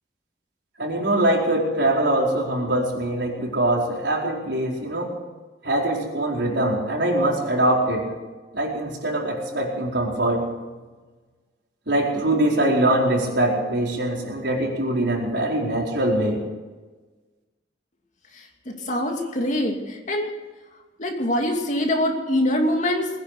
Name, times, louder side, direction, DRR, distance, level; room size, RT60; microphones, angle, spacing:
voice 1, 0.8-5.1 5.6-8.1 8.5-10.5 11.9-16.5, right 1 dB, 90° right, -1 dB, 4.5 m, -23 dB
voice 2, 18.3-20.3 21.0-23.1, left 1 dB, 45° left, 2 dB, 2.7 m, -24 dB
21.0 x 10.0 x 6.7 m, 1.3 s
head